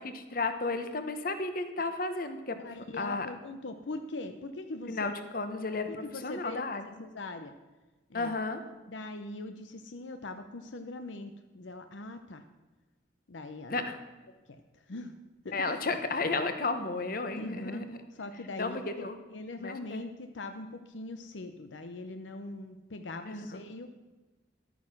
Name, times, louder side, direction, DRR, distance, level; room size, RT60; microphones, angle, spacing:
voice 1, 0.1-3.3 4.9-6.9 8.1-8.6 13.7-14.0 15.5-18.0 18.6-19.2 19.6-20.0 23.2-23.6, left 3 dB, 45° left, 9 dB, 1.0 m, -33 dB
voice 2, 2.6-5.0 5.9-6.6 7.0-7.5 8.1-8.3 8.9-12.4 13.3-13.9 14.5-14.6 14.9-15.1 15.4-15.6 17.3-17.8 18.2-23.9, left 2 dB, 70° left, 8 dB, 0.7 m, -41 dB
12.0 x 9.2 x 5.9 m, 1.2 s
head